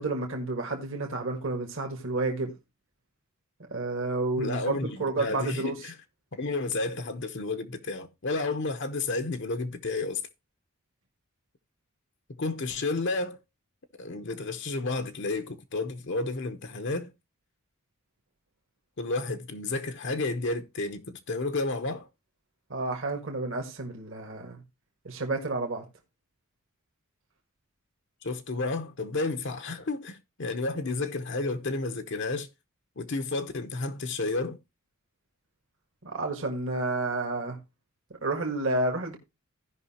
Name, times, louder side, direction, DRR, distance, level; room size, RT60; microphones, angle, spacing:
voice 1, 0.0-2.5 3.7-5.8 22.7-24.6 25.0-25.8 36.0-37.6 38.2-39.2, right 2 dB, 60° right, 1.6 m, -30 dB
voice 2, 4.4-5.9 6.3-10.2 12.4-13.4 14.0-17.1 19.0-22.1 28.2-32.5 33.0-34.6, left 3 dB, 55° left, 0.8 m, -31 dB
16.0 x 5.4 x 2.8 m
head